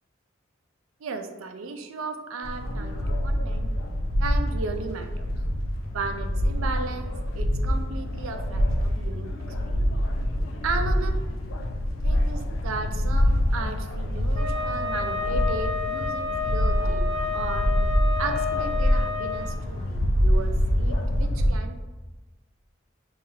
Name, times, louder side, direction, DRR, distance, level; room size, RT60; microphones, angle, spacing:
voice 1, 1.0-3.7 4.2-5.3 5.9-9.3 9.6-9.8 10.6-11.1 12.0-17.7 18.2-21.8, right 4 dB, 80° right, 6 dB, 0.4 m, -35 dB
sound 1, 2.4-21.5, equal, 75° left, 0.5 m, -26 dB
Wind instrument woodwind instrument, 14.3-19.5, left 4 dB, 35° right, 1.1 m, -30 dB
5.5 x 2.4 x 2.7 m, 1.2 s
head